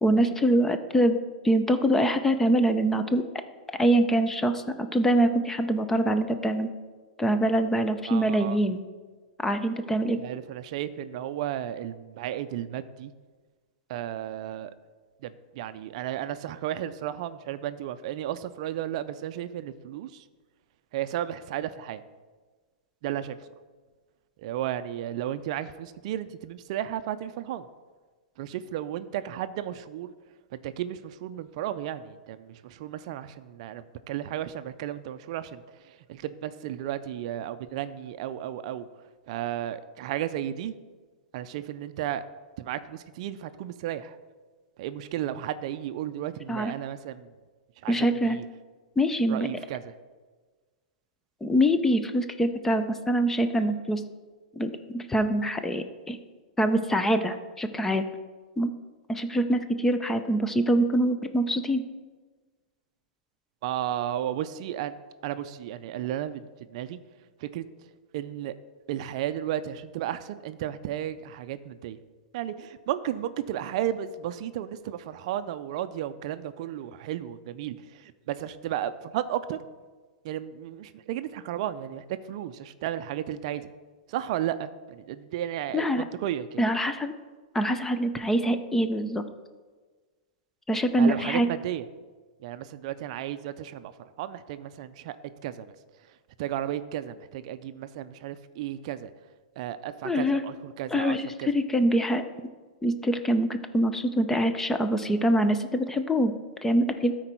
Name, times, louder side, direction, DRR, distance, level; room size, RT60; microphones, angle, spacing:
voice 1, 0.0-1.2 1.4-3.2 3.8-6.7 7.2-8.8 9.4-10.2 46.5-46.7 47.9-48.4 49.0-49.5 51.4-54.0 54.6-56.2 56.6-58.1 58.6-58.7 59.1-61.8 85.7-86.0 86.6-87.1 87.5-89.3 90.7-91.5 100.0-100.4 100.9-102.2 102.8-106.3 106.6-107.1, right 1 dB, 5° left, 9 dB, 0.5 m, -24 dB
voice 2, 8.1-8.6 10.2-13.1 13.9-14.7 15.2-20.2 20.9-22.0 23.0-23.4 24.4-27.7 28.4-30.1 30.5-38.9 39.3-40.7 41.3-42.2 42.6-44.2 44.8-47.3 47.8-48.4 49.3-49.9 63.6-64.9 65.2-67.0 67.4-67.7 68.1-68.5 68.9-72.0 72.3-79.6 80.2-83.7 84.1-86.6 91.0-91.8 92.4-95.2 95.4-95.7 96.4-99.1 99.6-101.5, right 11 dB, 50° right, 12 dB, 0.4 m, -33 dB
13.0 x 4.5 x 4.4 m, 1.4 s
hypercardioid pair, 145°, 5 cm